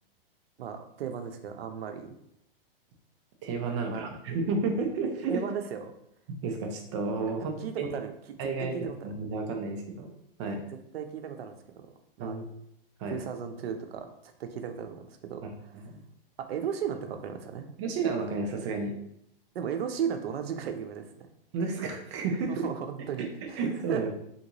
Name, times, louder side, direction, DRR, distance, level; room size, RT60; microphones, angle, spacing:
voice 1, 0.6-2.1 3.6-4.1 5.3-5.9 7.4-8.1 8.6-9.0 10.9-11.9 12.2-12.4 13.1-14.1 14.4-15.8 16.4-17.7 19.5-21.3 22.5-23.6 23.9-24.1, right 7 dB, 85° right, 6 dB, 0.6 m, -35 dB
voice 2, 3.4-5.4 6.3-7.9 8.4-10.1 10.4-10.6 12.2-12.4 13.0-13.2 15.4-15.5 15.8-16.0 17.8-19.0 21.5-22.7 23.2-23.3 23.6-24.1, right 4 dB, 30° right, 3 dB, 0.5 m, -31 dB
3.5 x 2.6 x 2.9 m, 0.75 s
supercardioid pair, 155°, 29 cm